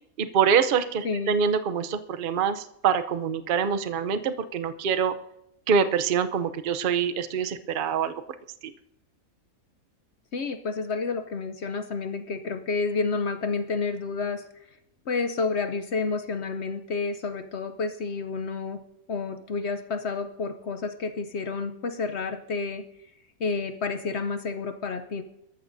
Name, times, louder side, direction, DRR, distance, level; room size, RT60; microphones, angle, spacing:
voice 1, 0.2-5.1 5.7-8.1 8.6-8.7, right 7 dB, 50° right, 9 dB, 0.7 m, -25 dB
voice 2, 10.3-14.4 15.1-18.8 19.1-22.8 23.4-25.2, left 4 dB, 55° left, 8 dB, 0.9 m, -30 dB
23.5 x 13.5 x 2.6 m, 0.82 s
omnidirectional pair, 1.5 m